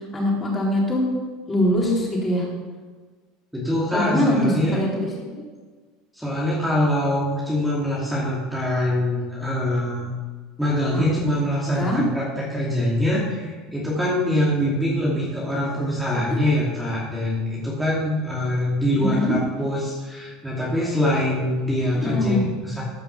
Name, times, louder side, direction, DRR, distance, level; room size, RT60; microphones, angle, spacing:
voice 1, 0.1-1.0 1.5-2.5 3.9-5.1 10.9-11.1 11.8-12.0 19.0-19.3 21.9-22.5, left 1 dB, 25° left, -3 dB, 4.0 m, -22 dB
voice 2, 3.5-4.8 6.1-10.1 10.6-22.4 22.6-22.8, left 1 dB, 5° right, -5 dB, 2.6 m, -24 dB
13.5 x 5.6 x 6.0 m, 1.4 s
supercardioid pair, 100°, 0 cm